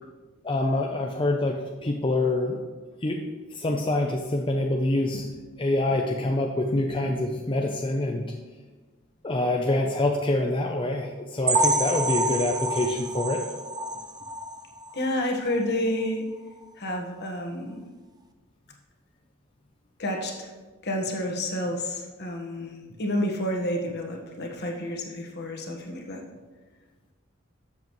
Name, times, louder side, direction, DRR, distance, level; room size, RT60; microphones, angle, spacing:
voice 1, 0.4-2.6 3.0-3.2 3.6-5.3 5.6-8.2 9.2-13.4, left 2 dB, 25° left, 1 dB, 0.6 m, -26 dB
sound 1, 11.5-15.1 15.5-15.6 16.0-16.1 16.6-16.7, right 2 dB, 20° right, 0.6 m, -28 dB
voice 2, 14.9-16.2 16.8-17.8 20.0-20.5 20.8-26.2, left 1 dB, 55° left, 1 dB, 1.4 m, -30 dB
12.5 x 7.4 x 3.1 m, 1.3 s
head